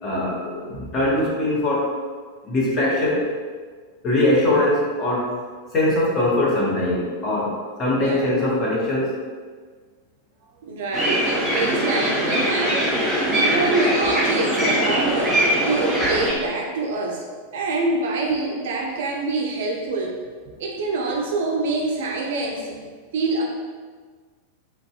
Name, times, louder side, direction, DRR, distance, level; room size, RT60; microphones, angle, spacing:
voice 1, 0.0-1.9 2.4-3.3 4.0-5.3 5.7-9.1, left 1 dB, 30° left, -5 dB, 0.7 m, -21 dB
voice 2, 7.9-8.4 10.6-17.2 17.5-20.2 20.6-22.8 23.1-23.4, right 3 dB, 55° right, 0 dB, 0.3 m, -26 dB
sound 1, 10.9-16.3, right 1 dB, 5° right, 0.6 m, -21 dB
2.5 x 2.1 x 2.3 m, 1.5 s
figure-of-eight pair, 90°, 0 cm